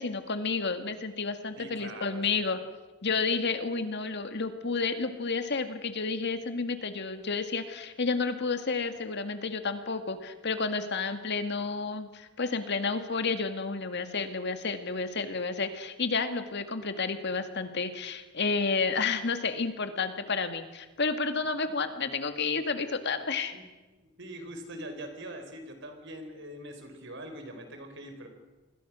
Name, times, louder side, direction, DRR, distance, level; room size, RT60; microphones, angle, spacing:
voice 1, 0.0-2.6 3.0-23.6, left 4 dB, 55° left, 8 dB, 2.0 m, -31 dB
voice 2, 1.6-2.4 23.5-23.6 23.9-28.3, right 1 dB, 60° right, 6 dB, 4.6 m, -43 dB
27.5 x 21.5 x 6.3 m, 1.2 s
head